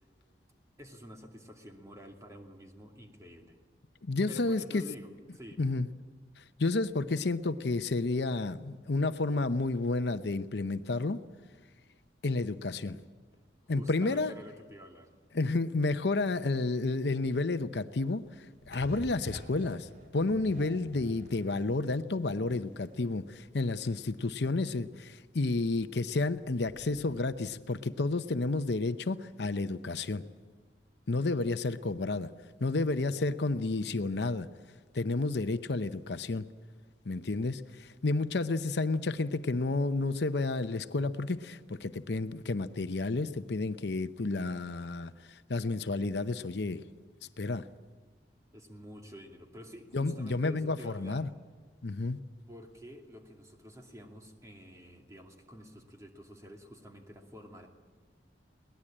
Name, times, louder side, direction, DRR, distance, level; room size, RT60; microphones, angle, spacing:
voice 1, 0.8-3.6 4.3-5.7 13.7-15.1 48.5-51.3 52.5-57.7, equal, 20° right, 2.5 m, -49 dB
voice 2, 4.0-4.8 5.6-5.9 6.4-11.2 12.2-13.0 13.7-14.3 15.3-30.2 31.1-32.3 32.6-34.5 34.9-36.4 37.1-46.8 47.4-47.7 49.9-51.3 51.8-52.2, left 3 dB, 70° left, 0.7 m, -31 dB
sound 1, 18.4-27.4, right 1 dB, 50° right, 3.2 m, -50 dB
22.5 x 19.0 x 8.8 m
head